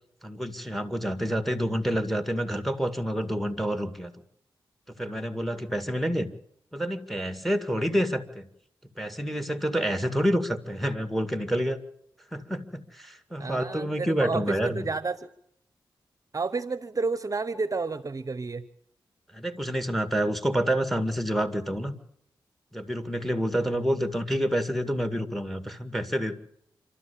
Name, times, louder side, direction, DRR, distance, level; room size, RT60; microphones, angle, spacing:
voice 1, 0.2-4.1 4.9-6.3 6.7-8.5 9.0-11.8 12.3-14.8 19.3-22.0 22.7-26.3, equal, ahead, 11 dB, 2.1 m, -28 dB
voice 2, 13.4-15.3 16.3-18.6, right 4 dB, 40° right, 15 dB, 0.8 m, -30 dB
26.5 x 13.0 x 8.6 m, 0.73 s
cardioid pair, 50°, 9 cm